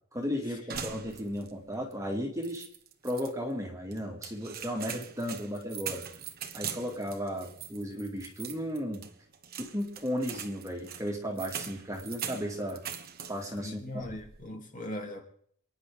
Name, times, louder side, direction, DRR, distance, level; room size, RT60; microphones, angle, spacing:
voice 1, 0.1-2.7 3.0-6.0 6.5-9.0 9.6-12.8 13.3-14.1, equal, 15° right, 1 dB, 2.4 m, -35 dB
sound 1, 0.7-1.6 1.9-2.0 2.4-3.3 3.9-13.6 13.9-14.5, right 8 dB, 45° right, 1.3 m, -42 dB
voice 2, 13.6-15.2, left 1 dB, 35° left, 1 dB, 3.2 m, -39 dB
28.5 x 10.5 x 3.8 m, 0.62 s
head